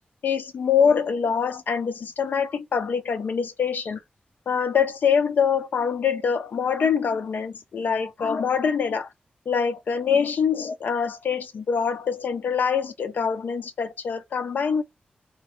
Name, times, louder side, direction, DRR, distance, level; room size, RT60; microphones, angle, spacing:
voice 1, 0.2-4.0 4.5-9.1 9.5-14.8, left 6 dB, 80° left, 0.7 m, -24 dB
4.0 x 2.5 x 3.2 m
wide cardioid pair, 160°, 3 cm